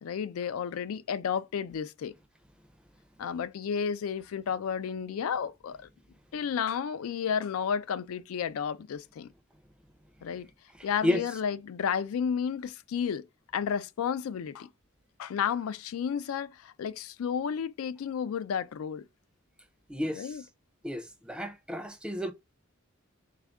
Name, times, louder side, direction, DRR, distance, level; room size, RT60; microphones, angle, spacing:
voice 1, 0.0-2.1 3.2-5.8 6.3-9.3 10.2-10.5 10.8-13.3 13.5-14.7 15.2-19.1 20.1-20.4, left 7 dB, 90° left, 0.4 m, -32 dB
voice 2, 10.8-11.2 19.9-20.4 20.8-22.3, left 1 dB, 5° right, 0.5 m, -32 dB
4.2 x 2.5 x 3.4 m
head